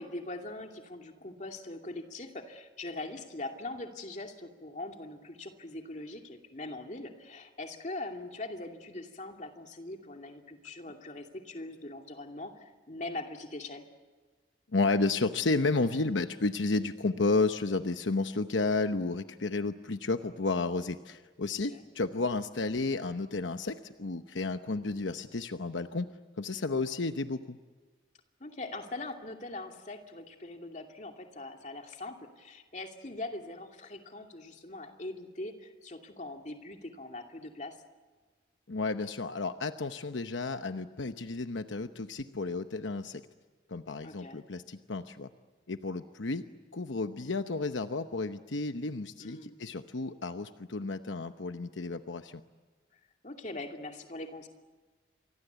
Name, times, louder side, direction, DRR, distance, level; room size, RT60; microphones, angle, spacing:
voice 1, 0.0-13.9 21.7-21.8 28.4-37.8 44.0-44.4 49.2-49.6 52.9-54.5, left 2 dB, 40° left, 4 dB, 2.6 m, -42 dB
voice 2, 14.7-26.1 26.4-27.6 38.7-43.2 43.7-45.3 45.7-46.4 46.7-52.4, left 3 dB, 80° left, 9 dB, 0.9 m, -32 dB
29.5 x 24.5 x 8.2 m, 1.4 s
head